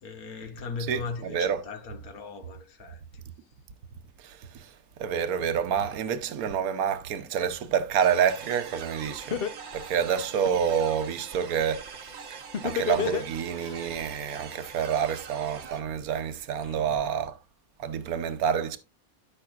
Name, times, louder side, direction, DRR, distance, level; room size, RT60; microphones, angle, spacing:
voice 1, 0.0-3.2 16.6-17.1, left 4 dB, 90° left, 1.7 m, -39 dB
voice 2, 0.9-1.6 4.2-4.7 5.0-9.4 9.7-17.4 17.8-18.8, right 8 dB, 80° right, 1.3 m, -28 dB
sound 1, 8.0-15.8, right 5 dB, 55° right, 1.1 m, -43 dB
Laughter, 8.8-8.9 9.3-10.8 12.5-13.7, left 8 dB, 50° left, 0.8 m, -29 dB
13.0 x 5.6 x 2.4 m
omnidirectional pair, 1.5 m